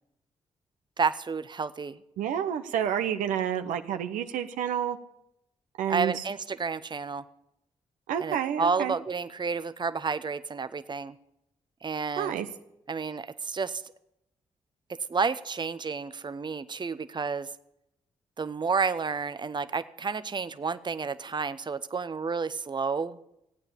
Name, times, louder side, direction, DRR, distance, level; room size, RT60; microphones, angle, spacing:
voice 1, 1.0-2.0 5.9-7.2 8.2-11.2 11.8-12.4 12.9-13.8 15.1-17.5 18.4-23.2, right 5 dB, 35° right, 13 dB, 0.8 m, -30 dB
voice 2, 2.2-5.0 5.8-6.2 8.1-8.9 12.2-12.5, right 9 dB, 85° right, 8 dB, 0.9 m, -29 dB
16.0 x 8.8 x 8.3 m, 0.84 s
supercardioid pair, 45°, 13 cm